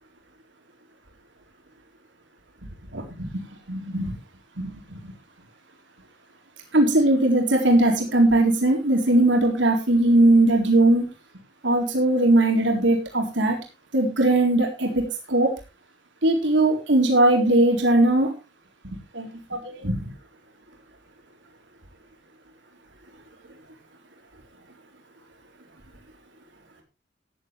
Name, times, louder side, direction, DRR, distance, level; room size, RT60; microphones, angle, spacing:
voice 1, 2.9-3.4 3.7-4.1 4.6-4.7 6.7-11.0 11.6-13.6 13.9-15.5 16.2-18.3 19.1-20.1, right 1 dB, 80° right, 1 dB, 4.0 m, -20 dB
15.0 x 10.5 x 3.4 m, 0.29 s
head